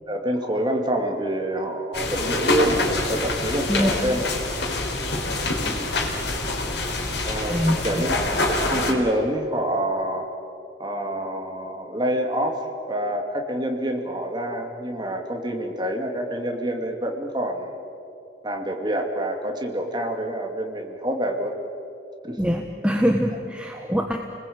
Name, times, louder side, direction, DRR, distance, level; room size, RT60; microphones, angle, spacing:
voice 1, 0.1-4.3 7.2-7.6 7.8-10.3 10.8-12.6 12.9-17.8 18.4-21.6 22.2-22.4 23.7-23.9, right 1 dB, 25° right, 2 dB, 2.4 m, -27 dB
sound 1, 1.9-8.9, left 2 dB, 70° left, 4.0 m, -25 dB
voice 2, 3.7-4.0 7.5-8.1 22.4-24.2, equal, 5° right, 3 dB, 1.2 m, -23 dB
30.0 x 20.5 x 8.7 m, 2.7 s
head